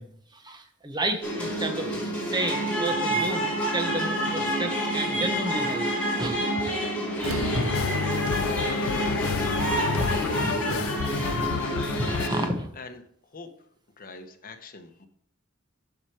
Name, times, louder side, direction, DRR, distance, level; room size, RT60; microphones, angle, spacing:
voice 1, 0.0-5.9 6.2-6.3 7.5-8.0 10.0-10.8 11.2-11.4 11.9-12.7, right 1 dB, 20° right, 5 dB, 1.0 m, -32 dB
sound 1, 1.2-12.5, right 1 dB, 5° left, 2.6 m, -28 dB
sound 2, 7.2-12.3, left 8 dB, 70° left, 0.3 m, -30 dB
Acoustic guitar / Strum, 7.2-12.1, right 4 dB, 85° right, 0.7 m, -41 dB
voice 2, 14.0-15.1, left 3 dB, 45° left, 6 dB, 0.9 m, -44 dB
7.3 x 6.0 x 4.7 m, 0.65 s
head